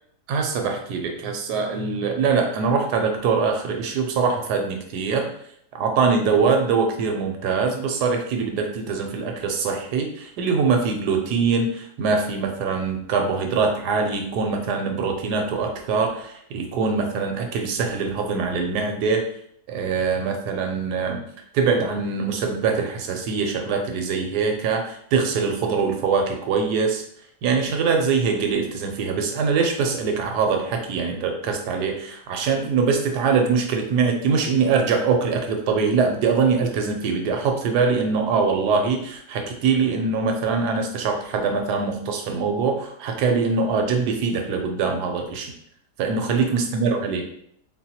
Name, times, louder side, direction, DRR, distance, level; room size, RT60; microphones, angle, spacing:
voice 1, 0.3-5.3 5.7-19.3 19.7-21.2 21.5-27.0 27.4-45.5 46.0-47.2, right 5 dB, 90° right, 3 dB, 1.2 m, -23 dB
3.9 x 2.2 x 2.8 m, 0.68 s
omnidirectional pair, 1.7 m